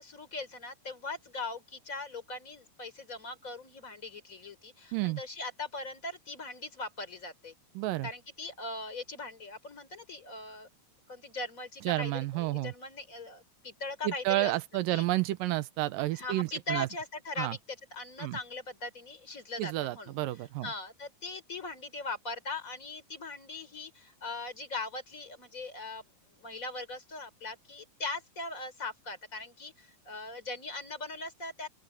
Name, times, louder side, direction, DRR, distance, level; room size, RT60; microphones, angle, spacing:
voice 1, 0.0-7.5 8.0-10.7 11.1-14.5 14.9-15.1 16.1-26.0 26.4-31.7, left 3 dB, 25° left, 3.8 m, -40 dB
voice 2, 7.8-8.1 11.9-12.7 14.0-16.9 17.4-17.6 18.2-18.4 19.6-20.7, right 17 dB, 80° right, 2.4 m, -30 dB
open air
omnidirectional pair, 4.0 m